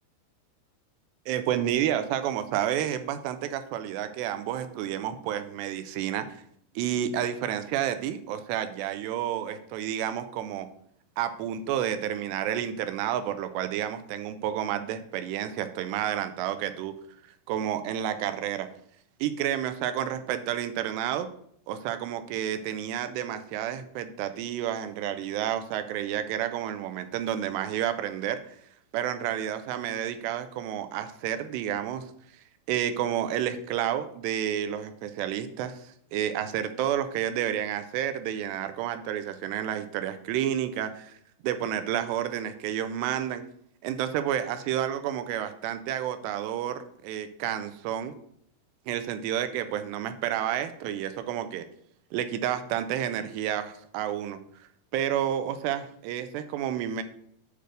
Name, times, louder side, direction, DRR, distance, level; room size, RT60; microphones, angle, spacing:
voice 1, 1.3-6.4 6.8-10.7 11.2-16.9 17.5-18.7 19.2-21.3 21.7-28.4 28.9-32.1 32.7-41.1 41.4-43.4 43.8-48.1 48.9-51.7 52.1-54.4 54.9-57.0, right 10 dB, 85° right, 10 dB, 2.8 m, -30 dB
8.9 x 3.4 x 6.3 m, 0.67 s
omnidirectional pair, 4.8 m